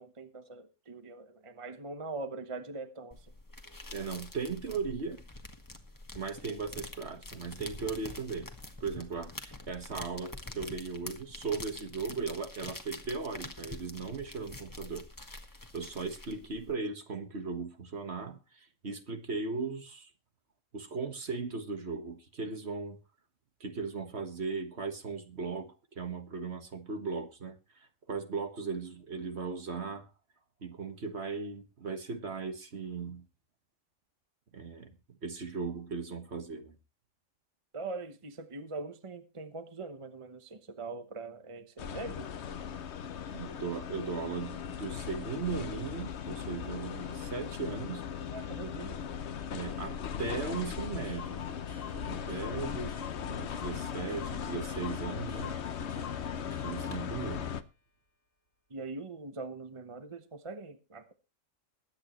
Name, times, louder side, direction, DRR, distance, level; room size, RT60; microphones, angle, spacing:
voice 1, 0.0-3.2 37.7-42.3 48.3-49.0 58.7-61.1, right 3 dB, 25° right, 1.0 m, -42 dB
sound 1, 3.1-16.7, left 2 dB, 15° left, 1.4 m, -46 dB
voice 2, 3.9-5.2 6.2-8.5 8.8-15.0 15.7-20.1 20.7-23.0 23.6-30.1 30.6-33.3 34.5-36.7 43.3-48.0 49.5-51.5 51.9-55.6 56.6-57.5, right 4 dB, 55° right, 1.7 m, -37 dB
sound 2, 41.8-57.6, left 7 dB, 60° left, 1.0 m, -38 dB
Clock, 49.8-49.9 50.1-50.2 50.4-57.0, left 7 dB, 85° left, 4.3 m, -48 dB
21.5 x 8.9 x 3.1 m
omnidirectional pair, 1.3 m